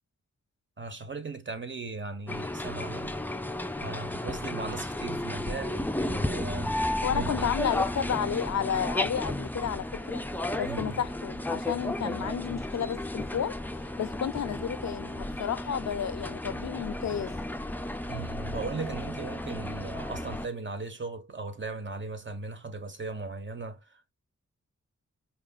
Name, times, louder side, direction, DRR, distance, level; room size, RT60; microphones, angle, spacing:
voice 1, 0.8-3.2 3.8-6.8 7.1-7.5 10.6-11.0 18.1-24.1, right 3 dB, 40° right, 1.1 m, -38 dB
sound 1, 2.3-20.5, left 1 dB, 5° left, 0.5 m, -33 dB
voice 2, 7.0-10.2 10.6-13.6 13.8-17.5, left 8 dB, 65° left, 0.5 m, -32 dB
5.1 x 2.9 x 2.3 m
cardioid pair, 55°, 30 cm